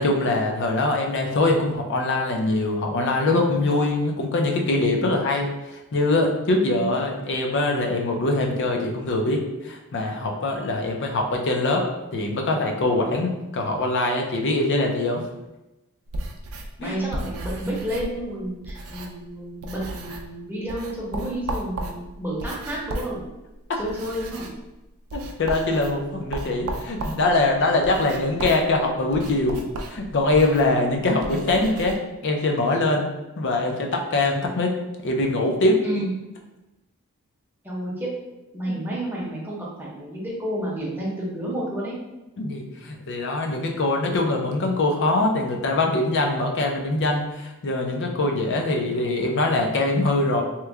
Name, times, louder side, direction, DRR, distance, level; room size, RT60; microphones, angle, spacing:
voice 1, 0.0-15.2 16.8-17.0 23.7-23.8 25.1-32.0 32.2-33.1 33.4-34.7 35.0-35.8 38.7-38.8 42.4-50.4, left 2 dB, 55° left, 2 dB, 0.5 m, -23 dB
voice 2, 6.5-6.8 16.8-23.2 23.8-24.5 35.8-36.1 37.6-38.1 38.5-42.0, equal, 10° right, -6 dB, 0.8 m, -30 dB
sound 1, 16.1-19.3 19.6-20.4 20.7-31.9, right 2 dB, 70° right, 0.4 m, -35 dB
3.0 x 2.2 x 3.5 m, 1.0 s
head